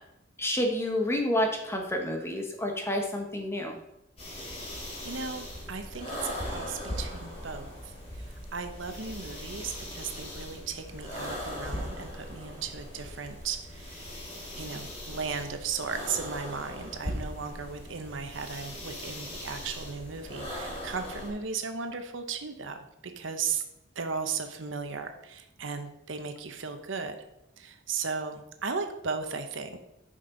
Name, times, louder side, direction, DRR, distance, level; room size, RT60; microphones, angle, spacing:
voice 1, 0.4-3.8, left 1 dB, 15° left, 2 dB, 1.2 m, -29 dB
sound 1, 4.2-21.3, left 1 dB, 30° left, 2.9 m, -39 dB
voice 2, 5.0-14.0 14.6-23.6 24.0-27.2 27.6-29.8, right 5 dB, 75° right, 7 dB, 0.9 m, -36 dB
9.8 x 5.3 x 3.9 m, 0.84 s
head